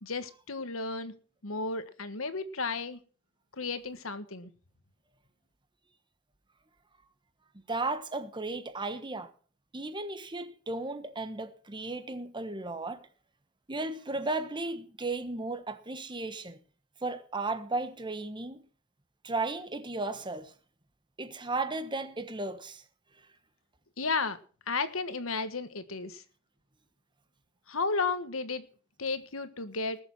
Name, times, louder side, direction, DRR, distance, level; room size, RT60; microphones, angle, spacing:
voice 1, 0.0-1.1 1.4-3.0 3.6-4.5 24.0-24.4 24.7-26.2 27.7-28.6 29.0-30.0, left 4 dB, 70° left, 1.5 m, -33 dB
voice 2, 7.7-9.3 9.7-13.0 13.7-16.6 17.0-18.7 19.2-20.5 21.2-22.8, right 2 dB, 20° right, 1.3 m, -35 dB
19.5 x 7.1 x 6.1 m
head